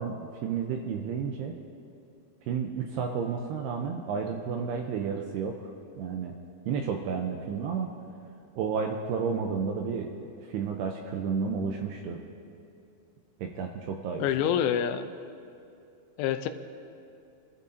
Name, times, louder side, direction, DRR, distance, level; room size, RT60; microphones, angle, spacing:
voice 1, 0.0-1.5 2.5-5.7 6.0-6.3 6.7-7.9 8.6-12.2 13.4-14.2, right 6 dB, 85° right, 3 dB, 2.4 m, -31 dB
voice 2, 14.2-15.1 16.2-16.5, left 9 dB, 90° left, 9 dB, 3.2 m, -26 dB
26.5 x 13.0 x 2.7 m, 2.6 s
omnidirectional pair, 5.4 m